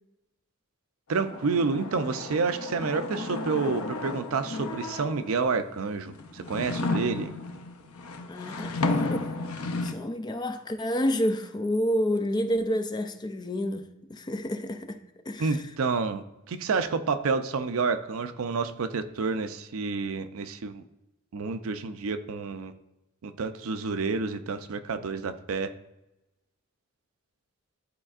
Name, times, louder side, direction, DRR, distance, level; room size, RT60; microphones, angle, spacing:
sound 1, 1.1-5.5 6.1-9.9, left 2 dB, 90° left, 0.6 m, -33 dB
voice 1, 1.1-7.3 15.4-16.2 16.5-20.8 21.3-22.7 23.2-25.7, right 4 dB, 75° right, 0.5 m, -29 dB
voice 2, 8.3-9.3 9.8-15.6, equal, 20° left, 0.4 m, -29 dB
11.5 x 4.3 x 2.4 m
head